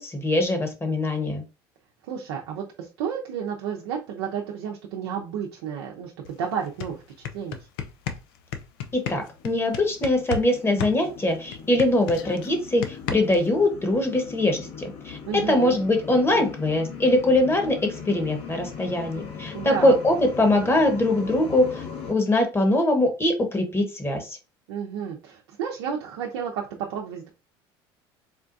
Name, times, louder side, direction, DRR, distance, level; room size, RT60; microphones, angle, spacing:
voice 1, 0.0-1.4 8.9-24.4, left 1 dB, 20° left, 5 dB, 1.2 m, -22 dB
voice 2, 2.1-7.6 15.2-15.8 19.5-20.0 24.7-27.3, right 7 dB, 80° right, 0 dB, 0.7 m, -32 dB
sound 1, 6.2-6.3 6.6-10.5 10.8-13.5, left 7 dB, 80° left, 0.5 m, -33 dB
sound 2, 9.3-22.1, left 6 dB, 55° left, 1.1 m, -40 dB
4.3 x 2.3 x 2.6 m, 0.30 s
hypercardioid pair, 75°, 12 cm